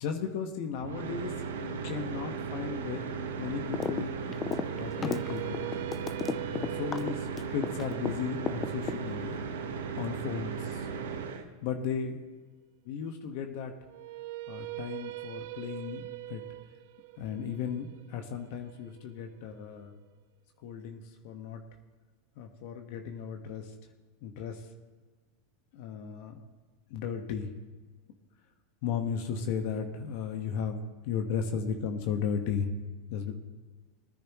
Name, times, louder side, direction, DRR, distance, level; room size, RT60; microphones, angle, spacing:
voice 1, 0.0-4.1 4.8-5.6 6.4-9.4 9.9-10.8 11.6-12.2 12.8-13.7 14.5-16.4 17.2-19.9 20.6-21.6 22.4-23.7 24.2-24.7 25.7-26.4 26.9-27.5 28.8-32.7 33.1-33.4, left 7 dB, 60° left, 4 dB, 1.4 m, -35 dB
sound 1, 0.8-11.4, right 6 dB, 85° right, 1.4 m, -36 dB
sound 2, 3.7-4.0 4.3-8.1 8.5-9.3, left 6 dB, 25° left, 0.6 m, -33 dB
sound 3, 4.5-10.6 13.9-19.9, right 17 dB, 65° right, 0.5 m, -43 dB
20.0 x 10.0 x 3.1 m, 1.3 s
hypercardioid pair, 110°, 0 cm